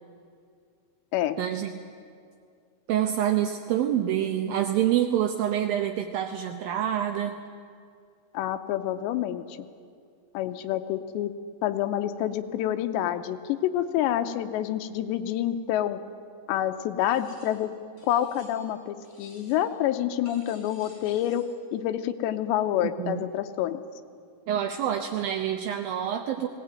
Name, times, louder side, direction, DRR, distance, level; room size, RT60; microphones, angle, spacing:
voice 1, 1.4-1.7 2.9-7.4 23.0-23.2 24.5-26.5, right 10 dB, 80° right, 6 dB, 2.1 m, -27 dB
voice 2, 8.3-9.6 10.3-11.3 11.6-16.0 16.5-17.7 18.0-21.4 21.7-23.8, left 11 dB, 85° left, 10 dB, 2.9 m, -27 dB
sound 1, 17.0-17.7 18.0-18.8 19.0-19.8 20.2-21.6, left 1 dB, 15° left, 4.8 m, -55 dB
19.5 x 18.0 x 9.0 m, 2.3 s
omnidirectional pair, 5.1 m